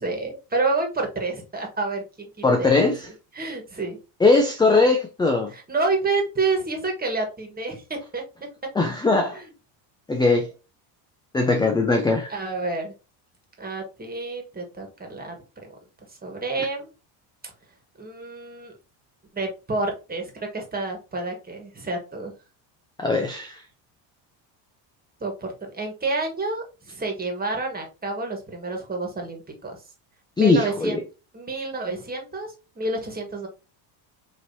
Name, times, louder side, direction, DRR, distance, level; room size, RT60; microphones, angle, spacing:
voice 1, 0.0-2.9 3.3-4.0 5.5-8.2 9.3-9.5 12.3-12.9 13.6-15.4 15.6-15.7 16.1-16.9 17.4-17.5 18.0-18.7 19.3-22.3 25.2-29.8 30.4-31.0 31.3-33.5, right 3 dB, 20° right, 1.5 m, -29 dB
voice 2, 2.4-3.1 4.2-5.5 8.8-9.4 10.1-10.5 11.3-12.3 23.0-23.6 30.4-31.0, left 3 dB, 10° left, 0.4 m, -20 dB
5.0 x 3.0 x 2.7 m
cardioid pair, 110°, 47 cm